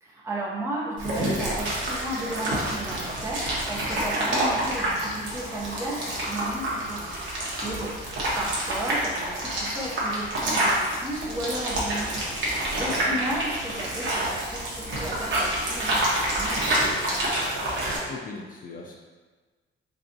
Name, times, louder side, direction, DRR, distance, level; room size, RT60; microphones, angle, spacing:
voice 1, 0.0-7.9 8.4-17.5, right 1 dB, 15° right, -5 dB, 0.6 m, -34 dB
sound 1, 1.0-18.0, right 1 dB, 65° right, 1.0 m, -28 dB
voice 2, 7.5-7.9 12.9-13.2 18.1-19.0, left 4 dB, 45° left, 0 dB, 0.4 m, -39 dB
3.9 x 3.4 x 2.6 m, 1.4 s
cardioid pair, 160°, 20 cm